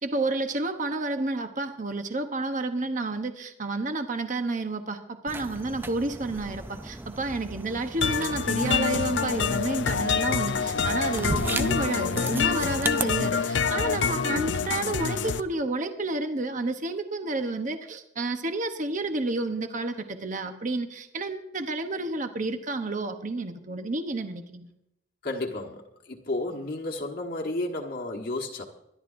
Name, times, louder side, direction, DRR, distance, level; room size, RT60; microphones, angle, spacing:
voice 1, 0.0-24.7, right 2 dB, 45° right, 7 dB, 0.9 m, -30 dB
sound 1, 5.3-13.0, right 2 dB, 10° right, 0.4 m, -36 dB
sound 2, 8.0-15.4, left 6 dB, 70° left, 0.5 m, -26 dB
voice 2, 25.2-28.7, left 2 dB, 55° left, 0 dB, 1.3 m, -32 dB
24.0 x 11.0 x 2.6 m, 0.81 s
head